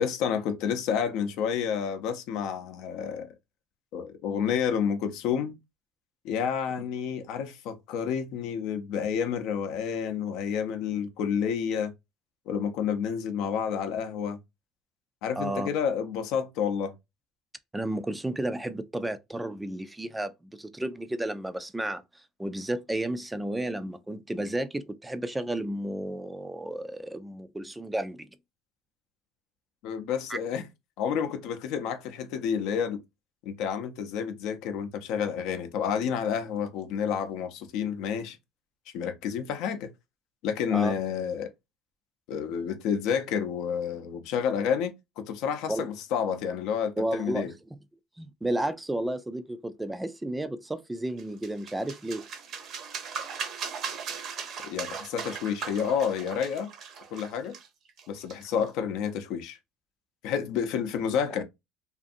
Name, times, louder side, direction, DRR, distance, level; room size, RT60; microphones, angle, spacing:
voice 1, 0.0-3.3 3.9-5.5 6.2-11.9 12.5-14.4 15.2-16.9 29.8-30.6 31.0-33.0 33.5-38.4 38.9-39.9 40.4-41.5 42.3-47.5 54.6-56.7 57.1-57.5 58.1-59.6 60.2-61.4, left 7 dB, 70° left, 0.5 m, -29 dB
voice 2, 15.4-15.7 17.7-28.3 30.3-30.4 40.7-40.9 45.7-45.9 47.0-47.4 48.2-52.2, right 1 dB, 10° right, 0.3 m, -32 dB
sound 1, 51.2-58.7, right 6 dB, 50° right, 0.7 m, -38 dB
2.5 x 2.5 x 2.5 m
supercardioid pair, 110°, 0 cm